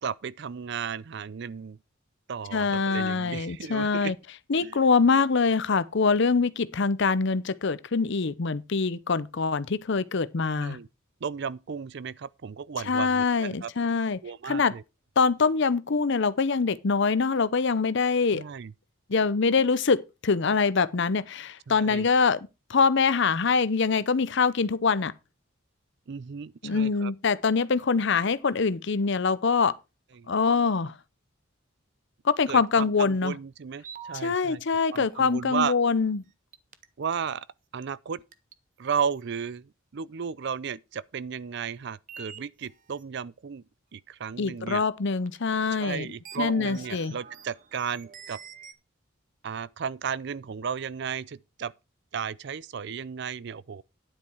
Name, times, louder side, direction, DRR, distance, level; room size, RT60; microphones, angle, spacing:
voice 1, 0.0-1.8 2.3-4.1 4.6-4.8 10.6-10.9 11.2-13.7 14.2-14.8 18.3-18.7 21.7-22.1 26.1-27.1 30.2-30.3 32.5-34.6 34.9-35.7 37.0-37.5 37.7-38.2 38.8-43.6 43.9-44.8 45.7-48.4 49.4-51.7 52.1-53.8, right 6 dB, 55° right, 0.4 m, -34 dB
voice 2, 2.5-4.1 4.5-10.8 12.9-14.7 15.2-18.4 19.1-22.4 22.7-25.1 26.6-29.8 30.3-30.9 32.2-33.4 34.1-36.2 44.4-46.1 46.4-47.1, left 4 dB, 60° left, 0.6 m, -24 dB
sound 1, 33.8-34.2 36.5-37.1 37.8-37.9 38.3-38.5 39.2-39.3 42.1-43.0 44.7-44.8 45.3-45.4 46.1-48.7, right 6 dB, 40° right, 0.8 m, -45 dB
10.0 x 8.6 x 4.5 m
head